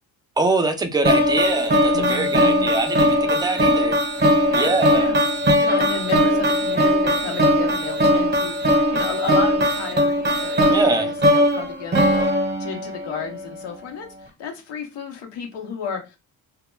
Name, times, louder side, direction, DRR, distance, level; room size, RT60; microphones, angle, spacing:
voice 1, 0.4-3.9 4.5-5.1 10.7-11.1, right 3 dB, 10° right, 7 dB, 0.4 m, -23 dB
sound 1, 1.0-13.2, equal, 25° right, 0.8 m, -19 dB
voice 2, 1.9-2.7 4.5-5.2 5.6-12.3 12.6-16.2, left 6 dB, 80° left, 2 dB, 0.8 m, -33 dB
2.2 x 2.2 x 3.0 m, 0.27 s
cardioid pair, 90°, 41 cm